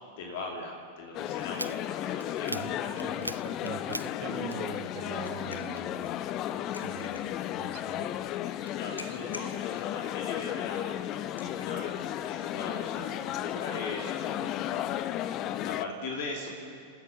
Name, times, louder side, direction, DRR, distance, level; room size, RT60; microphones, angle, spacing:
voice 1, 0.2-2.9 8.8-10.8 11.4-16.5, left 3 dB, 50° left, 1 dB, 2.6 m, -40 dB
sound 1, 1.1-15.8, left 12 dB, 35° left, 0.7 m, -34 dB
sound 2, 1.5-5.2 5.4-6.7 7.2-9.3 9.7-10.5, right 1 dB, 90° right, 0.5 m, -42 dB
voice 2, 2.5-6.2 6.8-8.2, right 10 dB, 45° right, 8 dB, 1.3 m, -43 dB
sound 3, 4.8-14.8, left 2 dB, 75° left, 1.9 m, -53 dB
29.5 x 13.5 x 8.3 m, 2.4 s
figure-of-eight pair, 90°, 0 cm